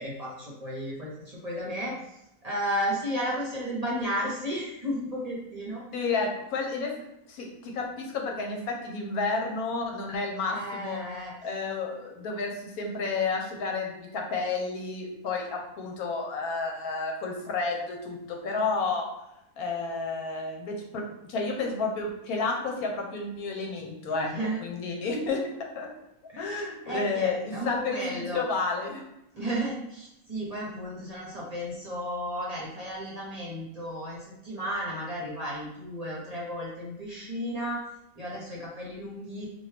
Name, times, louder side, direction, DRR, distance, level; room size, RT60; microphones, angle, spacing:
voice 1, 0.0-1.9 2.4-5.8 10.5-11.3 24.1-24.6 26.3-28.4 29.3-37.8 38.2-39.5, equal, 30° right, -5 dB, 0.8 m, -33 dB
voice 2, 5.9-6.9 7.3-11.0 11.4-19.0 19.6-25.5 25.8-25.9 26.4-29.0, left 4 dB, 80° left, 1 dB, 1.3 m, -31 dB
4.4 x 2.6 x 3.3 m, 0.86 s
omnidirectional pair, 1.5 m